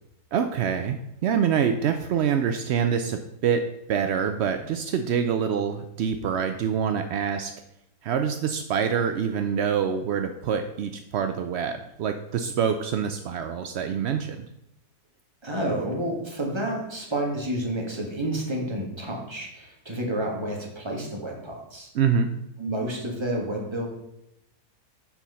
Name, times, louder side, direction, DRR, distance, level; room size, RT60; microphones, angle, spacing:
voice 1, 0.3-7.5 8.0-14.4 21.9-22.3, right 7 dB, 70° right, 7 dB, 0.6 m, -26 dB
voice 2, 15.4-21.9 22.6-23.9, right 1 dB, 15° right, -1 dB, 1.6 m, -30 dB
6.8 x 5.9 x 5.5 m, 0.82 s
omnidirectional pair, 1.7 m